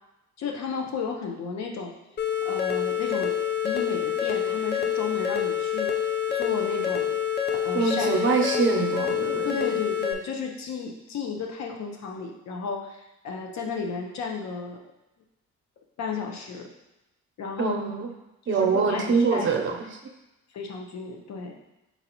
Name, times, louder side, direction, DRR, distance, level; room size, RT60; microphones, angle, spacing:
voice 1, 0.4-1.9 2.4-3.3 3.6-5.9 6.3-7.1 7.6-8.3 8.8-9.0 9.4-14.8 16.0-16.7 17.4-17.8 18.5-19.8 20.5-21.5, left 5 dB, 65° left, 2 dB, 0.8 m, -33 dB
sound 1, 2.2-10.1, left 9 dB, 35° left, 0.5 m, -27 dB
voice 2, 7.7-9.5 17.6-18.1 18.5-19.7, right 5 dB, 40° right, 2 dB, 0.8 m, -24 dB
4.4 x 4.0 x 3.0 m, 0.95 s
cardioid pair, 90°, 30 cm